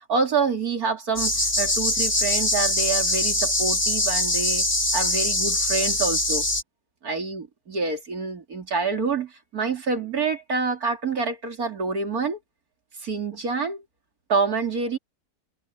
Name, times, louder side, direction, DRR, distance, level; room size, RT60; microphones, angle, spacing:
voice 1, 0.0-4.7 4.9-6.5 7.0-12.4 13.0-13.8 14.3-15.0, right 4 dB, 70° right, 3.5 m, -27 dB
sound 1, 1.2-6.6, left 1 dB, 35° left, 5.3 m, -23 dB
omnidirectional pair, 1.6 m